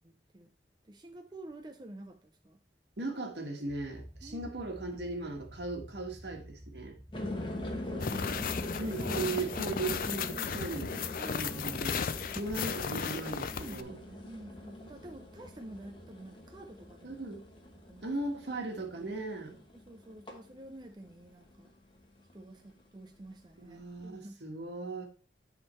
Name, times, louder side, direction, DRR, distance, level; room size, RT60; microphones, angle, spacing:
voice 1, 0.8-2.6 4.2-4.5 7.8-8.8 11.1-11.9 13.4-17.5 17.8-18.1 19.7-21.7 22.3-24.5, right 1 dB, 25° right, 5 dB, 0.5 m, -49 dB
voice 2, 3.0-7.0 8.8-11.0 11.3-12.0 12.4-13.9 17.0-17.4 18.0-19.6 23.6-25.1, right 2 dB, 70° right, 3 dB, 1.5 m, -37 dB
sound 1, 3.6-9.3, equal, 10° right, 2.3 m, -49 dB
sound 2, 7.1-21.7 21.9-22.6, left 1 dB, 30° left, 1.2 m, -42 dB
sound 3, 8.0-13.8, left 6 dB, 50° left, 0.4 m, -35 dB
9.7 x 3.7 x 4.3 m, 0.37 s
head